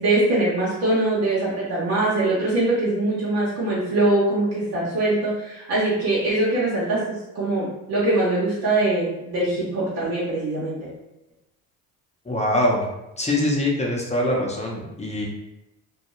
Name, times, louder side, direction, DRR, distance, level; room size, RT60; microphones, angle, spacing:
voice 1, 0.0-10.9, right 2 dB, 65° right, -7 dB, 0.9 m, -22 dB
voice 2, 12.3-12.9 13.2-15.3, left 1 dB, 15° left, -2 dB, 0.7 m, -23 dB
2.3 x 2.1 x 3.0 m, 0.90 s
hypercardioid pair, 60°, 42 cm